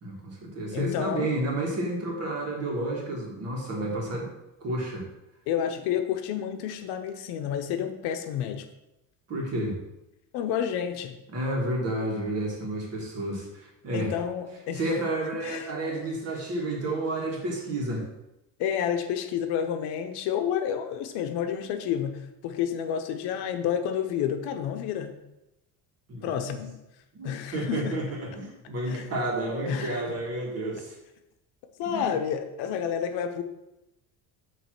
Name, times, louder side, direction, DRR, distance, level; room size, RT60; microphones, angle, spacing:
voice 1, 0.0-4.3 4.6-5.1 9.3-9.8 11.3-14.1 14.7-18.1 26.1-26.5 27.1-31.0 31.9-32.2, right 1 dB, 40° right, -1 dB, 1.7 m, -31 dB
voice 2, 0.7-1.3 5.5-8.6 10.3-11.1 13.9-14.9 15.4-15.7 15.9-16.1 18.6-25.1 26.2-26.7 27.2-28.0 28.9-29.1 29.7-30.2 31.8-33.4, left 9 dB, 80° left, 7 dB, 0.9 m, -30 dB
7.6 x 3.2 x 5.9 m, 0.92 s
cardioid pair, 175°, 39 cm